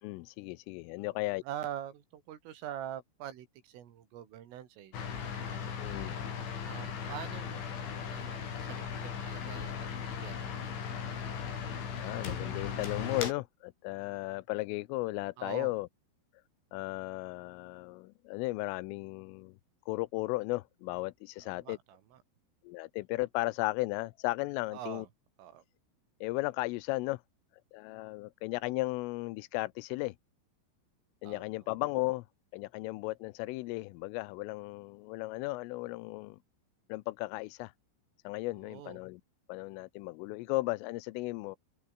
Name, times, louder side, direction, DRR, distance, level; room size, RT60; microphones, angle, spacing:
voice 1, 0.0-1.4 5.8-6.2 12.0-15.9 16.7-19.5 19.9-21.8 22.6-25.1 26.2-27.2 27.7-30.1 31.2-32.2 32.5-36.4 36.9-37.7 38.2-39.2 39.5-41.6, left 21 dB, 85° left, 3.3 m, -35 dB
voice 2, 1.0-5.4 6.6-10.9 15.4-15.7 21.4-22.2 24.7-25.1 25.4-25.6 31.3-31.4 38.6-39.0, right 11 dB, 90° right, 5.2 m, -45 dB
sound 1, 4.9-13.3, left 7 dB, 70° left, 7.2 m, -37 dB
omnidirectional pair, 5.7 m